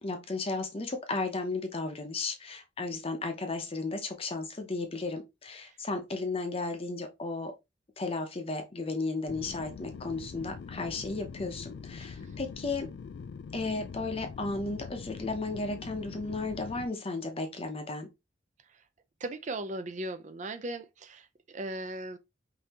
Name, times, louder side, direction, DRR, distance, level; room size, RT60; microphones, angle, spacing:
voice 1, 0.0-7.5 8.0-12.9 13.5-18.1, left 3 dB, 30° left, 0.7 m, -34 dB
sound 1, 9.3-16.9, left 5 dB, 65° left, 0.3 m, -43 dB
voice 2, 19.2-22.2, right 2 dB, 40° right, 0.5 m, -38 dB
5.4 x 2.7 x 2.9 m
head